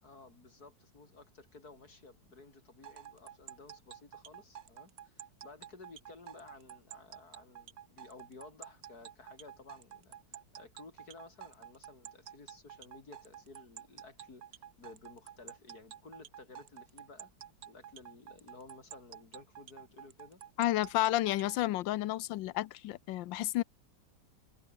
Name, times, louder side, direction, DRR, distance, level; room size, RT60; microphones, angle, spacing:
voice 1, 0.0-17.3 17.7-20.4, left 3 dB, 55° left, 4.9 m, -55 dB
sound 1, 2.8-21.6, right 10 dB, 60° right, 1.3 m, -50 dB
voice 2, 20.6-23.6, left 15 dB, 85° left, 1.4 m, -31 dB
omnidirectional pair, 2.0 m